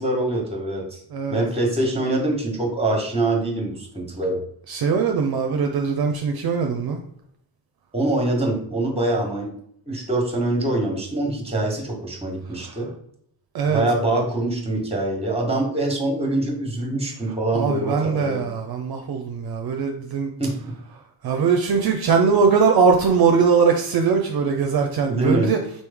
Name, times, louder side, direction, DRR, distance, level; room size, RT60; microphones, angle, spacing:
voice 1, 0.0-1.0 1.3-4.4 7.9-9.5 9.9-12.9 13.7-18.5 20.4-20.6 25.1-25.5, right 2 dB, 15° right, 1 dB, 1.3 m, -24 dB
voice 2, 1.1-1.4 4.7-7.0 12.5-12.8 13.5-13.8 17.5-20.3 21.2-25.6, right 5 dB, 55° right, 4 dB, 0.5 m, -21 dB
4.2 x 3.1 x 3.5 m, 0.67 s
cardioid pair, 95°, 45 cm